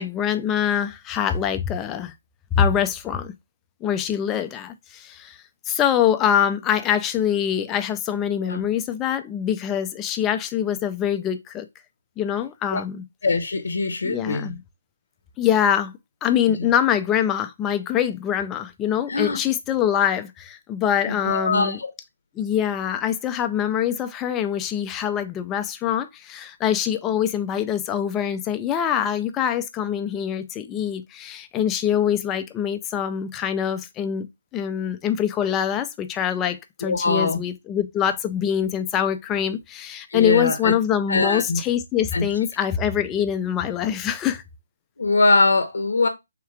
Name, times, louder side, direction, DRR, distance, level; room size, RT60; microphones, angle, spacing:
voice 1, 0.0-2.1 2.5-3.3 3.8-5.4 5.7-11.7 12.2-13.0 14.0-14.6 15.4-21.8 22.4-34.3 34.5-44.4, left 9 dB, 15° left, 0.3 m, -24 dB
voice 2, 13.2-14.5 16.5-16.7 19.1-19.4 21.1-21.9 36.8-37.4 40.1-40.7 41.1-41.6 42.1-42.3 45.0-46.1, left 3 dB, 80° left, 0.6 m, -22 dB
3.6 x 2.4 x 4.4 m
hypercardioid pair, 165°, 0 cm